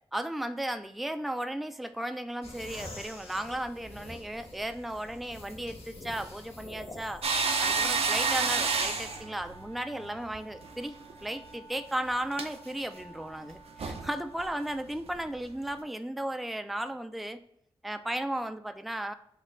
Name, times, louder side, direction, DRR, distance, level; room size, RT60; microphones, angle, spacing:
voice 1, 0.1-7.2 7.6-11.0 11.2-17.4 17.8-19.1, right 1 dB, ahead, 9 dB, 0.3 m, -35 dB
sound 1, 2.4-9.2, left 2 dB, 85° left, 1.0 m, -45 dB
sound 2, 7.2-10.7 11.0-11.2 12.3-12.5 13.5-13.6 13.8-14.1 14.4-14.5 15.1-15.2, right 4 dB, 80° right, 0.5 m, -29 dB
sound 3, 9.0-14.5, right 2 dB, 50° left, 1.1 m, -52 dB
5.2 x 2.2 x 3.7 m, 0.71 s
wide cardioid pair, 90°, 10 cm